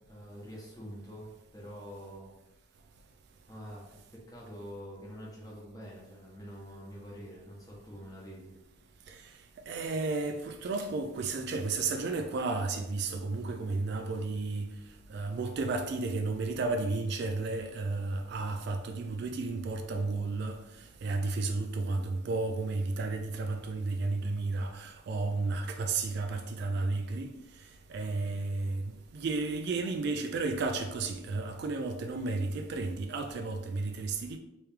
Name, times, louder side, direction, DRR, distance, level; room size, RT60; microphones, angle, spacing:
voice 1, 0.1-2.3 3.5-8.5, equal, 15° left, 1.0 m, -46 dB
voice 2, 9.7-14.7 15.1-20.6 21.0-27.3 27.9-34.4, right 3 dB, 55° right, 0.3 m, -32 dB
3.1 x 3.1 x 3.5 m
head